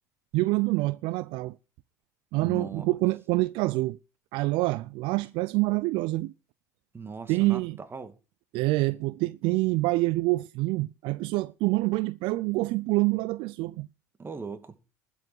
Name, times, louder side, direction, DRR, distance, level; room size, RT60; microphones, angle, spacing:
voice 1, 0.3-1.6 2.3-4.0 4.3-6.3 7.3-7.8 8.5-13.9, right 21 dB, 65° right, 0.5 m, -26 dB
voice 2, 2.4-2.9 6.9-8.2 14.2-14.8, right 4 dB, 25° right, 2.4 m, -38 dB
12.0 x 7.3 x 7.8 m
hypercardioid pair, 70°, 9 cm